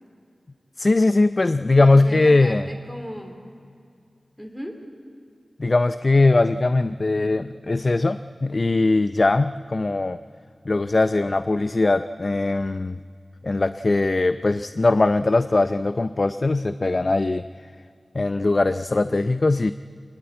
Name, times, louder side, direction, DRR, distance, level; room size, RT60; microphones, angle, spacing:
voice 1, 0.8-2.7 5.6-10.2 10.7-13.0 13.4-17.5 18.1-19.7, left 2 dB, 45° left, 11 dB, 0.5 m, -20 dB
voice 2, 1.8-3.4 4.4-4.8, equal, 5° left, 2 dB, 2.9 m, -36 dB
24.5 x 20.0 x 8.6 m, 2.4 s
wide cardioid pair, 70°, 0 cm